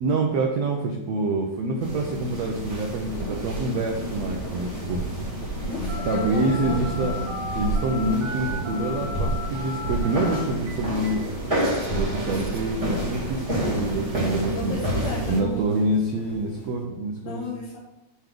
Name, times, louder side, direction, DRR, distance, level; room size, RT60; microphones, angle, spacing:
voice 1, 0.0-5.0 6.1-7.2 7.6-11.2 11.9-14.7 15.3-17.5, right 2 dB, 80° right, 1 dB, 1.5 m, -26 dB
sound 1, 1.8-15.4, equal, 25° right, 0.7 m, -31 dB
sound 2, 2.6-16.7, right 2 dB, 55° left, 2.2 m, -34 dB
voice 2, 5.6-6.8 14.4-15.9 17.2-17.8, left 1 dB, 80° left, -6 dB, 2.9 m, -33 dB
Telephone, 5.9-12.7, equal, 65° right, 2.6 m, -36 dB
7.9 x 3.4 x 6.0 m, 0.95 s
omnidirectional pair, 3.9 m